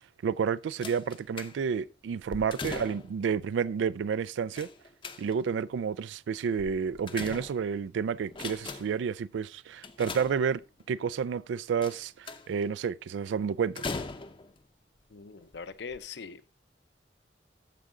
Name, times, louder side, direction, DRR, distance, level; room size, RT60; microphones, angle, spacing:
voice 1, 0.0-4.7 5.2-10.6 10.9-13.9, right 6 dB, 90° right, 0.3 m, -30 dB
sound 1, 0.8-1.8 2.3-3.2 4.6-5.6 6.6-7.9 8.3-9.1 9.8-10.8 11.8-12.6 13.8-14.6 15.4-15.5 15.9-16.0, left 4 dB, 30° left, 0.6 m, -40 dB
voice 2, 15.1-16.6, left 5 dB, 65° left, 0.6 m, -42 dB
13.5 x 4.8 x 3.7 m
head